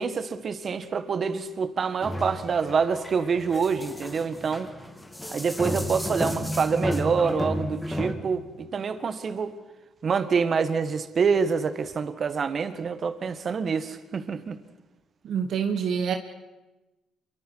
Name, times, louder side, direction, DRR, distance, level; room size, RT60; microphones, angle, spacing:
voice 1, 0.0-4.7 5.3-9.6 10.0-14.6, right 5 dB, 45° right, 1.6 m, -26 dB
sound 1, 2.0-8.1, left 1 dB, 10° left, 2.4 m, -32 dB
voice 2, 15.2-16.2, right 7 dB, 65° right, 1.3 m, -26 dB
27.5 x 23.5 x 4.8 m
supercardioid pair, 75°, 0 cm